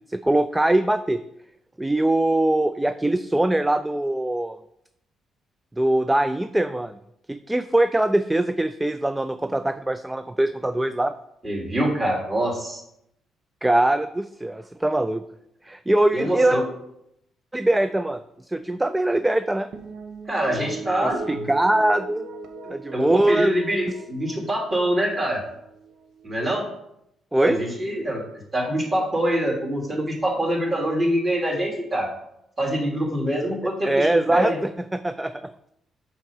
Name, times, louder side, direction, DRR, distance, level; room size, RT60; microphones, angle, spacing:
voice 1, 0.1-1.2 1.8-4.6 5.8-7.0 7.3-11.1 13.6-15.2 15.6-16.6 17.5-18.2 18.5-19.7 21.0-22.2 22.7-23.5 27.3-27.6 33.9-35.5, right 1 dB, 10° right, 11 dB, 0.3 m, -22 dB
voice 2, 11.4-12.8 16.1-16.6 20.3-21.5 22.9-25.4 26.2-26.7 27.3-28.2 28.5-32.1 32.6-34.6, right 1 dB, 30° right, -2 dB, 2.6 m, -25 dB
sound 1, 19.7-26.3, right 4 dB, 70° right, 0.9 m, -39 dB
5.9 x 4.5 x 5.6 m, 0.78 s
cardioid pair, 90°, 0 cm